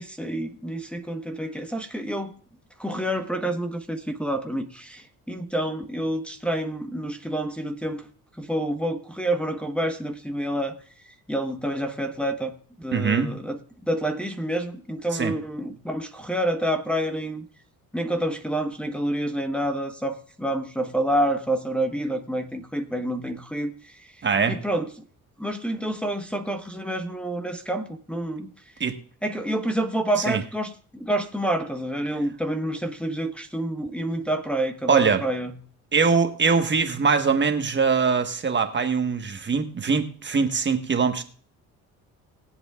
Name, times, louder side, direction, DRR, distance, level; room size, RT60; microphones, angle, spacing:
voice 1, 0.0-2.3 2.8-8.1 8.4-10.8 11.1-13.6 13.9-17.4 17.9-24.1 24.5-24.9 25.4-28.5 29.2-35.5, right 1 dB, 5° left, 3 dB, 1.2 m, -28 dB
voice 2, 12.9-13.3 15.1-15.3 24.2-24.6 28.8-29.0 30.3-30.4 34.9-35.2 35.9-41.2, right 5 dB, 35° right, 6 dB, 1.4 m, -22 dB
21.0 x 8.1 x 2.4 m, 0.43 s
cardioid pair, 100°, 33 cm